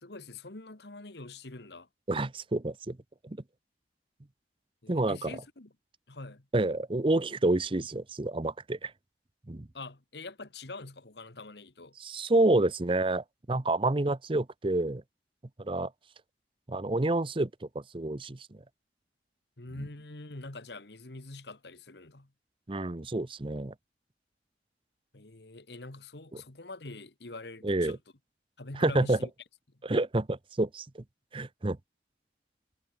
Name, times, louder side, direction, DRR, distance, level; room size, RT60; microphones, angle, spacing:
voice 1, 0.0-1.9 4.8-5.7 6.1-6.5 9.7-11.9 19.6-22.3 25.1-28.0 28.6-29.3, left 2 dB, 65° left, 1.8 m, -44 dB
voice 2, 2.1-3.0 3.2-3.4 4.9-5.3 6.5-8.9 9.5-9.7 12.0-15.0 15.6-15.9 16.7-17.5 17.7-18.5 22.7-23.7 27.6-28.0 28.8-29.2 29.8-31.0 31.3-31.8, right 2 dB, 30° right, 0.7 m, -28 dB
head